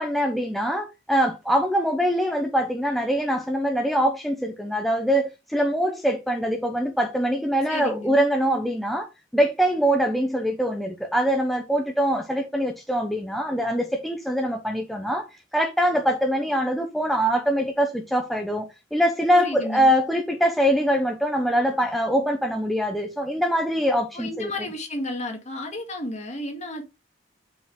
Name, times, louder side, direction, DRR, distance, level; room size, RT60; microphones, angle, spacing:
voice 1, 0.0-15.3 15.5-24.5, equal, ahead, 0.7 m, -23 dB
voice 2, 7.7-8.1 19.3-19.9 24.1-26.8, left 1 dB, 40° left, 2.0 m, -32 dB
5.9 x 5.0 x 3.6 m
head